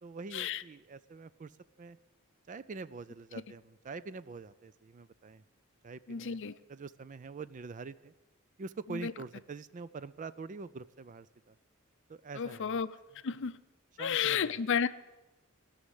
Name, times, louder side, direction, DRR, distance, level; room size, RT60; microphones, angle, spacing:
voice 1, 0.0-1.5 1.8-2.0 2.5-5.4 5.8-6.4 6.7-8.1 8.6-11.6 12.1-12.8 14.0-14.5, right 4 dB, 35° right, 16 dB, 0.4 m, -45 dB
voice 2, 6.1-6.6 8.9-9.1 12.4-12.9 13.2-13.6 14.0-14.9, left 7 dB, 60° left, 14 dB, 0.5 m, -32 dB
16.0 x 6.5 x 9.8 m, 1.0 s
head